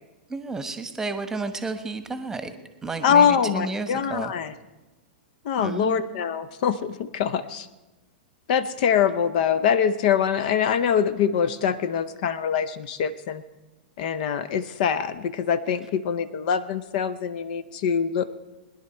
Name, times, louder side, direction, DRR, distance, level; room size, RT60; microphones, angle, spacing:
voice 1, 0.3-2.6 2.8-4.3 5.6-6.0, right 3 dB, 10° right, 9 dB, 1.2 m, -31 dB
voice 2, 3.0-4.5 5.4-7.7 8.5-13.4 14.0-18.3, left 7 dB, 55° left, 15 dB, 0.7 m, -24 dB
21.0 x 10.5 x 4.4 m, 1.1 s
hypercardioid pair, 115°, 5 cm